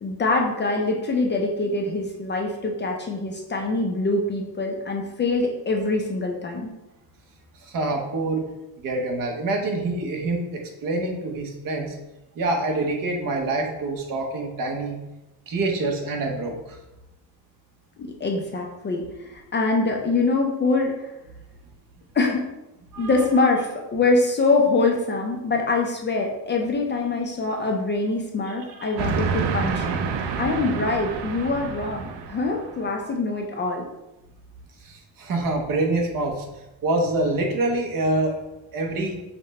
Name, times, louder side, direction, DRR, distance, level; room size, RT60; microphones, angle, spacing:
voice 1, 0.0-6.7 18.0-21.1 22.1-22.5 23.0-30.0 30.4-33.9, left 3 dB, 30° left, 1 dB, 0.4 m, -24 dB
voice 2, 7.6-8.4 8.8-12.0 12.3-15.0 15.5-16.8 22.9-23.1 28.5-28.9 34.8-36.5 36.8-38.3 38.7-39.2, right 2 dB, 55° right, 2 dB, 0.9 m, -26 dB
Train, 29.0-32.9, right 6 dB, 85° right, 0.6 m, -28 dB
5.6 x 2.1 x 4.1 m, 0.97 s
cardioid pair, 170°, 39 cm